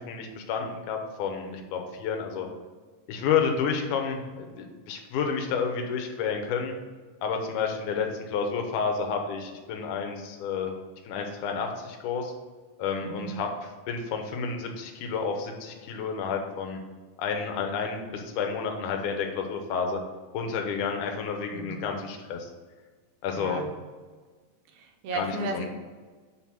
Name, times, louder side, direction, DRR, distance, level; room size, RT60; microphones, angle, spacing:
voice 1, 0.1-2.5 3.1-6.7 7.2-10.7 11.0-12.3 12.8-13.5 13.9-16.8 17.2-20.0 20.3-22.5 23.2-23.6 25.1-25.7, left 6 dB, 80° left, 3 dB, 2.3 m, -30 dB
voice 2, 21.5-21.9 23.3-23.7 24.8-25.7, right 3 dB, 75° right, 4 dB, 2.1 m, -34 dB
6.1 x 3.9 x 5.6 m, 1.4 s
omnidirectional pair, 3.7 m